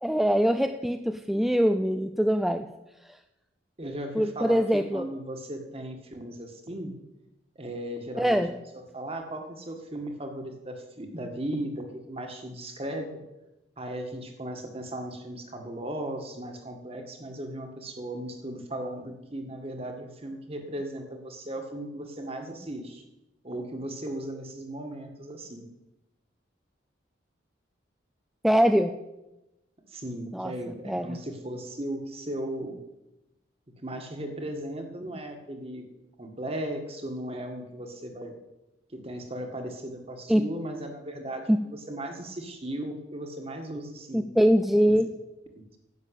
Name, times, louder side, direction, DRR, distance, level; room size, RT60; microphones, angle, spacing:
voice 1, 0.0-2.7 3.0-3.2 4.1-5.1 8.2-8.5 28.4-28.9 30.3-30.5 30.9-31.2 40.3-40.4 41.5-41.6 44.1-45.1, equal, ahead, 7 dB, 0.4 m, -23 dB
voice 2, 3.8-6.9 7.6-8.4 8.9-13.2 13.8-23.0 23.4-25.7 29.9-32.8 33.8-35.9 36.2-38.3 38.9-44.3, right 1 dB, 30° right, 4 dB, 1.8 m, -37 dB
11.0 x 7.1 x 8.3 m, 0.97 s
head